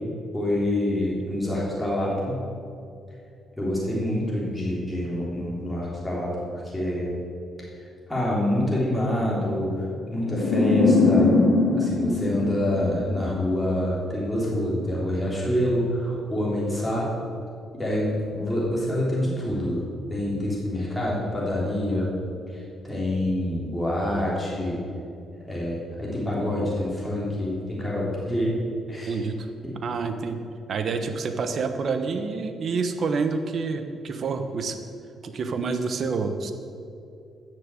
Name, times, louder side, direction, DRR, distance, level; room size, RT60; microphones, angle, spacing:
voice 1, 0.3-2.4 3.6-7.1 7.7-11.4 11.7-17.1 17.7-19.8 20.1-22.1 22.5-24.8 25.5-28.5 28.9-29.2 29.6-29.7, left 1 dB, 5° left, -6 dB, 3.5 m, -26 dB
sound 1, 10.3-13.4, left 3 dB, 75° left, 1.4 m, -21 dB
voice 2, 29.1-29.5 29.8-30.4 30.7-34.8 35.2-36.5, right 4 dB, 55° right, 8 dB, 1.1 m, -28 dB
13.5 x 6.7 x 7.7 m, 2.5 s
cardioid pair, 105°, 0 cm